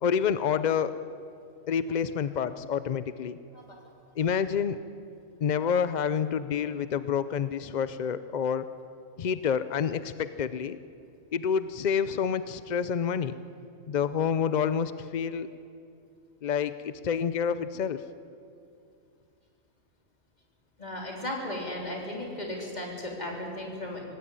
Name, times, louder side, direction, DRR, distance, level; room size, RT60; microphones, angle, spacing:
voice 1, 0.0-0.9 1.7-3.4 4.2-4.8 5.4-8.7 9.2-10.8 11.3-13.3 13.9-15.5 16.4-18.0, left 7 dB, 60° left, 13 dB, 0.4 m, -28 dB
voice 2, 20.8-24.0, left 1 dB, 30° left, -1 dB, 3.7 m, -35 dB
18.0 x 17.0 x 9.9 m, 2.5 s
omnidirectional pair, 1.4 m